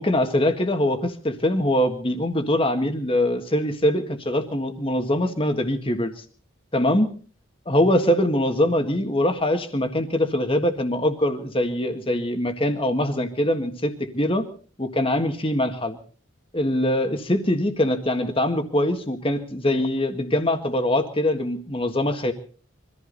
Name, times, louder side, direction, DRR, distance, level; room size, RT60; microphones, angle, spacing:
voice 1, 0.0-6.1 6.7-7.1 7.7-14.4 14.8-16.0 16.5-22.3, left 1 dB, 25° left, 7 dB, 1.7 m, -23 dB
24.0 x 14.5 x 4.1 m, 0.41 s
head